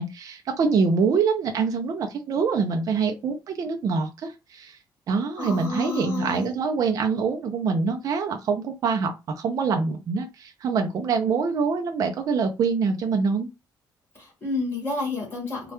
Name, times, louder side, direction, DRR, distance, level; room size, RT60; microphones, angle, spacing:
voice 1, 0.0-4.8 5.1-13.5, right 5 dB, 50° right, 0.3 m, -25 dB
voice 2, 5.4-6.5 14.1-15.7, left 3 dB, 30° left, 0.9 m, -30 dB
2.2 x 2.1 x 2.8 m
cardioid pair, 155°, 8 cm